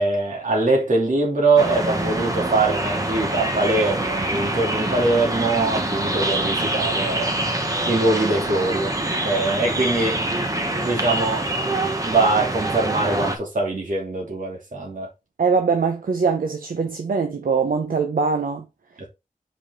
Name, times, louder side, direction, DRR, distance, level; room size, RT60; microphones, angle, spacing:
voice 1, 0.0-7.3 7.9-9.0 9.2-10.2 10.8-15.1 19.0-19.1, right 2 dB, 65° right, 2.6 m, -22 dB
sound 1, 1.6-13.4, right 1 dB, 25° right, 1.3 m, -25 dB
voice 2, 15.4-18.6, right 5 dB, 85° right, 0.9 m, -22 dB
5.5 x 5.1 x 3.6 m
wide cardioid pair, 95°, 14 cm